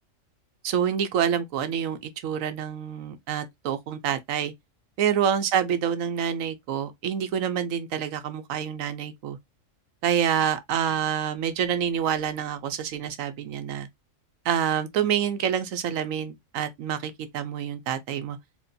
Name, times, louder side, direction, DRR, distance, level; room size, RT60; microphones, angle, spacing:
voice 1, 0.6-4.5 5.0-9.4 10.0-13.9 14.4-18.4, right 8 dB, 80° right, 1.1 m, -27 dB
4.4 x 2.9 x 2.6 m
omnidirectional pair, 1.4 m